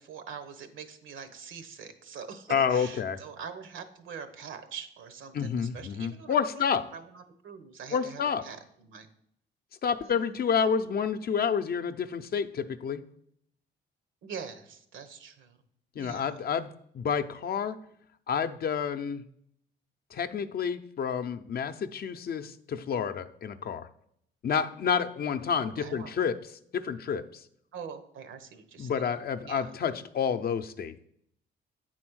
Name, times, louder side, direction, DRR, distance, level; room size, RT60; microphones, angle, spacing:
voice 1, 0.0-9.1 10.0-10.4 14.2-15.6 15.9-16.4 25.6-26.2 27.7-29.1 29.4-29.7, right 6 dB, 80° right, 10 dB, 1.0 m, -44 dB
voice 2, 2.5-3.2 5.3-6.9 7.9-8.4 9.8-13.0 16.0-17.8 18.3-19.2 20.1-23.9 24.4-26.4 26.7-27.4 28.8-31.0, left 7 dB, 50° left, 9 dB, 0.6 m, -29 dB
8.6 x 4.1 x 6.2 m, 0.69 s
cardioid pair, 90°, 20 cm